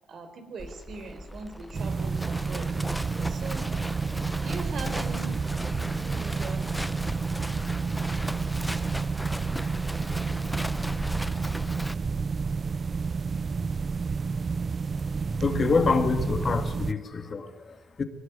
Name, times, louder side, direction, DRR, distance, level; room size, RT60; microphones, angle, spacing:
voice 1, 0.1-2.7 3.1-3.7 4.4-5.4 6.0-6.9, right 4 dB, 60° right, 4.2 m, -40 dB
Livestock farm animals working animals, 0.6-11.9, equal, 5° left, 0.7 m, -37 dB
sound 1, 1.7-16.9, right 5 dB, 40° right, 0.7 m, -30 dB
voice 2, 15.4-18.0, left 4 dB, 40° left, 2.1 m, -26 dB
22.0 x 19.0 x 9.6 m
cardioid pair, 90°, 0 cm